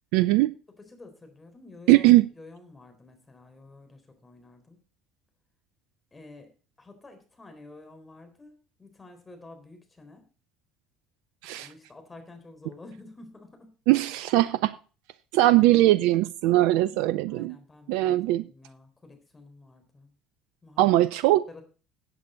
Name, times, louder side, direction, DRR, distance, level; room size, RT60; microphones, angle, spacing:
voice 1, 0.1-0.5 1.9-2.2 11.4-11.7 13.9-14.7 15.3-17.6 17.9-18.5 20.8-21.6, right 16 dB, 70° right, 0.4 m, -20 dB
voice 2, 0.8-2.1 2.3-4.9 6.1-10.3 11.6-13.7 15.4-15.8 16.8-17.0 17.3-20.1 20.6-21.0 21.5-21.6, left 2 dB, 20° left, 4.0 m, -50 dB
15.0 x 8.3 x 3.9 m
hypercardioid pair, 60°, 0 cm